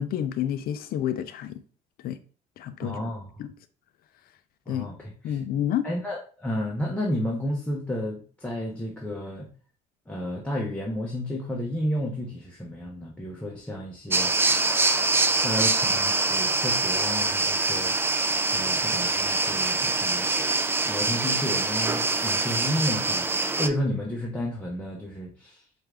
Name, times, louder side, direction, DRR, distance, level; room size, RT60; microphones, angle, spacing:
voice 1, 0.0-1.6 2.0-2.2 2.6-3.0 3.4-3.5 4.7-4.9 5.2-5.9, left 10 dB, 60° left, 0.4 m, -29 dB
voice 2, 2.8-3.3 4.7-5.4 5.8-9.5 10.1-14.3 15.4-18.0 18.5-20.3 20.8-25.6, left 1 dB, 5° left, 0.8 m, -32 dB
sound 1, 14.1-23.7, right 3 dB, 15° right, 0.3 m, -24 dB
4.5 x 2.5 x 3.3 m
cardioid pair, 110°, 17 cm